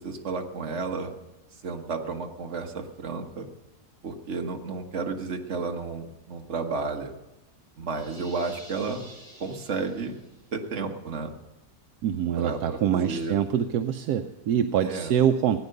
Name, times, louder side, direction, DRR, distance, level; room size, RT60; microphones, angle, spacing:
voice 1, 0.0-1.1 1.6-3.5 4.0-7.1 7.8-9.1 9.4-10.2 10.5-11.3 12.4-13.4 14.8-15.1, right 4 dB, 50° right, 3 dB, 1.6 m, -32 dB
sound 1, 7.9-10.5, equal, ahead, 5.5 m, -49 dB
voice 2, 12.0-15.6, right 9 dB, 75° right, 7 dB, 1.1 m, -25 dB
17.5 x 9.4 x 6.6 m, 1.0 s
omnidirectional pair, 1.7 m